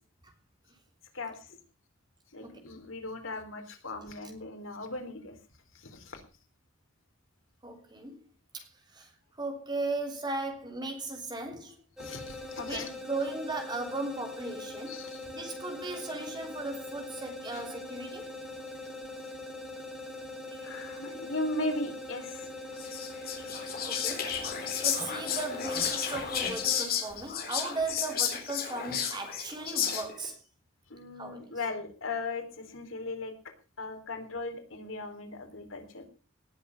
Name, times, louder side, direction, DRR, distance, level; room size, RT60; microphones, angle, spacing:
voice 1, 1.1-1.6 2.3-5.3 5.7-6.2 12.0-12.9 14.9-15.3 17.5-17.6 20.6-22.5 30.9-33.3 33.8-36.0, left 2 dB, 85° left, 3.7 m, -37 dB
voice 2, 7.6-8.2 8.5-8.6 8.9-9.1 9.4-11.8 12.6-15.0 15.3-18.3 20.5-20.7 23.9-24.4 24.8-30.4 31.2-31.4, right 2 dB, 20° right, 3.3 m, -37 dB
sound 1, 12.0-26.9, left 2 dB, 5° right, 2.8 m, -42 dB
Whispering, 22.8-30.3, left 8 dB, 50° left, 4.1 m, -32 dB
18.5 x 7.5 x 7.0 m
head